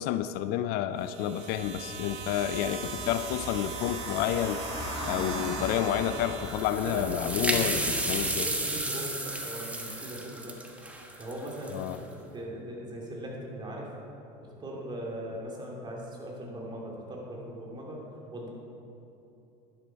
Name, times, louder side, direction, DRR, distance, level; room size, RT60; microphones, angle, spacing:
voice 1, 0.0-4.6 5.1-7.8 8.1-8.5 11.7-12.0, left 11 dB, 65° left, 11 dB, 0.5 m, -30 dB
sound 1, 1.0-7.1, right 5 dB, 75° right, 1.5 m, -40 dB
Car passing by / Engine, 1.5-8.3, left 1 dB, 25° left, 2.6 m, -40 dB
sound 2, 6.4-12.0, right 1 dB, 10° right, 1.3 m, -32 dB
voice 2, 6.8-10.6 11.2-12.1 12.3-13.9 14.4-18.0 18.3-18.5, right 1 dB, 25° right, -3 dB, 2.9 m, -39 dB
11.5 x 10.5 x 4.6 m, 2.8 s
supercardioid pair, 115°, 18 cm